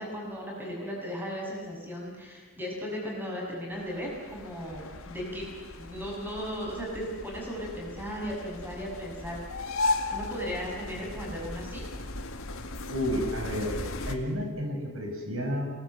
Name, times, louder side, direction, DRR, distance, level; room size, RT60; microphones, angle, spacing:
voice 1, 0.0-5.5 5.8-9.7 10.1-11.8, equal, 10° right, -2 dB, 6.6 m, -36 dB
sound 1, 3.7-14.1, left 2 dB, 65° left, 2.1 m, -36 dB
voice 2, 12.9-13.8 14.1-15.7, equal, 65° right, 2 dB, 5.3 m, -31 dB
28.0 x 19.0 x 8.1 m, 1.5 s
head